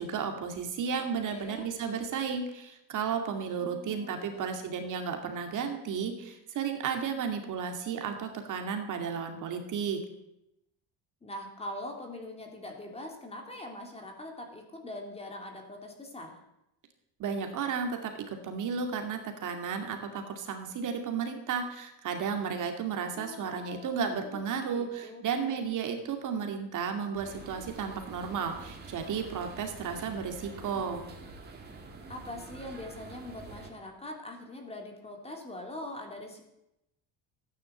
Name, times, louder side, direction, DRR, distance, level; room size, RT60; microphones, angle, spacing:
voice 1, 0.0-10.0 17.2-18.1 18.4-31.0, right 6 dB, 50° right, 5 dB, 2.4 m, -33 dB
voice 2, 1.2-1.7 3.6-4.6 11.2-16.4 23.1-25.6 32.1-36.4, left 1 dB, 15° left, 2 dB, 2.8 m, -43 dB
sound 1, 27.1-33.7, right 3 dB, 25° right, 2.8 m, -47 dB
14.0 x 10.0 x 7.9 m, 0.86 s
cardioid pair, 150°, 38 cm